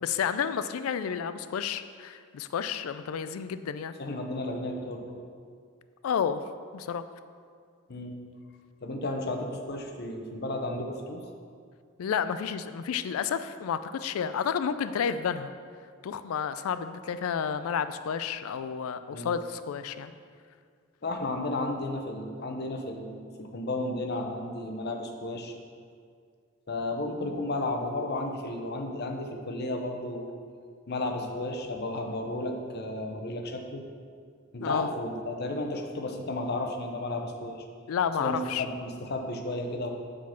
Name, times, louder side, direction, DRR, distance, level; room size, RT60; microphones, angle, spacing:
voice 1, 0.0-3.9 6.0-6.4 6.7-7.0 12.0-15.5 16.0-20.1 34.6-34.9 37.9-38.7, left 7 dB, 85° left, 12 dB, 0.3 m, -31 dB
voice 2, 4.0-5.2 7.9-8.2 8.8-11.3 19.1-19.3 21.0-25.5 26.7-30.4 30.9-33.8 34.5-37.6 38.2-39.9, left 2 dB, 50° left, 3 dB, 0.7 m, -33 dB
7.4 x 3.8 x 5.7 m, 2.1 s
head